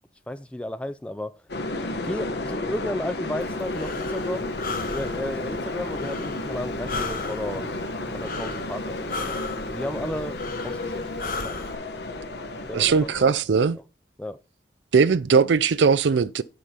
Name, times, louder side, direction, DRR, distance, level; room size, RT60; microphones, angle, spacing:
voice 1, 0.3-1.4 1.7-4.5 4.9-7.8 8.1-9.4 9.7-11.1 11.4-11.6 12.6-13.1 14.2-14.4, left 1 dB, 5° left, 0.4 m, -33 dB
sound 1, 1.5-13.3, left 2 dB, 70° left, 1.3 m, -32 dB
Breathing, 3.4-11.7, left 3 dB, 50° left, 1.4 m, -36 dB
voice 2, 12.7-13.8 14.9-16.4, right 5 dB, 90° right, 0.4 m, -19 dB
9.3 x 4.9 x 5.6 m
head